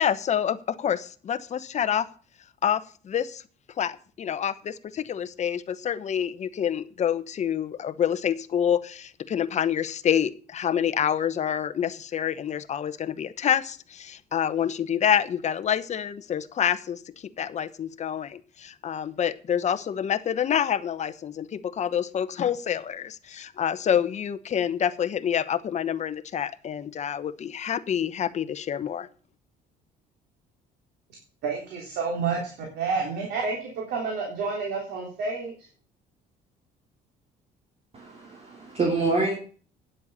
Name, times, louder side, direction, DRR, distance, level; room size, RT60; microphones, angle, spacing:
voice 1, 0.0-2.1 2.6-3.4 3.8-17.0 17.4-29.1, left 9 dB, 45° left, 12 dB, 1.0 m, -27 dB
voice 2, 31.4-35.5, right 4 dB, 75° right, -1 dB, 3.7 m, -29 dB
voice 3, 37.9-39.3, right 3 dB, 35° right, 0 dB, 3.1 m, -26 dB
9.9 x 7.8 x 7.2 m, 0.41 s
cardioid pair, 110°, 17 cm